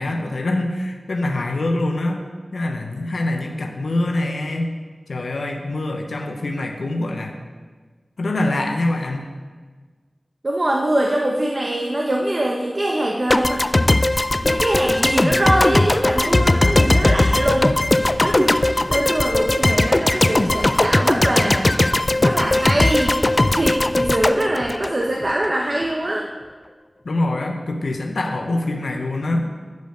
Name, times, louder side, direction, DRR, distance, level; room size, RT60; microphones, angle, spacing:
voice 1, 0.0-2.2 2.5-4.7 5.1-7.4 8.2-9.3 27.0-29.5, left 2 dB, 85° left, 3 dB, 0.9 m, -24 dB
voice 2, 10.4-14.0 14.4-21.8 22.2-23.2 23.5-26.3, right 1 dB, 45° right, 0 dB, 1.0 m, -23 dB
sound 1, 13.3-25.5, left 2 dB, 40° left, 0.4 m, -18 dB
11.0 x 5.2 x 6.4 m, 1.4 s
wide cardioid pair, 45°, 0 cm